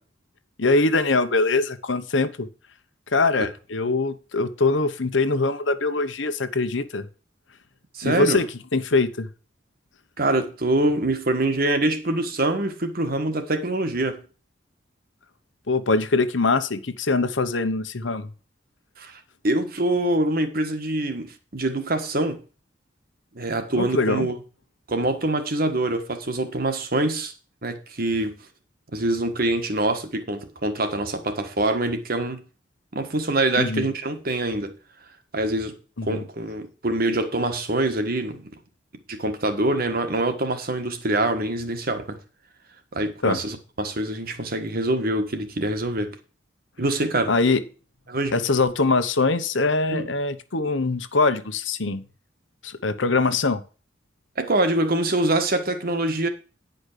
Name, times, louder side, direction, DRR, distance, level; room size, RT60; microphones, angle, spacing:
voice 1, 0.6-2.5 3.1-7.1 8.0-8.5 8.7-9.3 15.7-18.3 23.8-24.3 33.6-33.8 36.0-36.2 43.2-43.4 47.3-47.6 48.3-52.0 52.6-53.6, left 3 dB, 80° left, 1.1 m, -22 dB
voice 2, 7.9-8.4 10.2-14.2 19.0-22.4 23.3-24.4 24.9-27.3 27.6-28.3 28.9-32.4 32.9-34.7 35.3-35.7 36.0-38.5 39.1-42.2 42.9-46.1 46.8-47.3 48.1-48.4 49.9-50.1 54.4-56.3, right 2 dB, 50° right, 1.5 m, -25 dB
10.0 x 5.3 x 6.7 m
head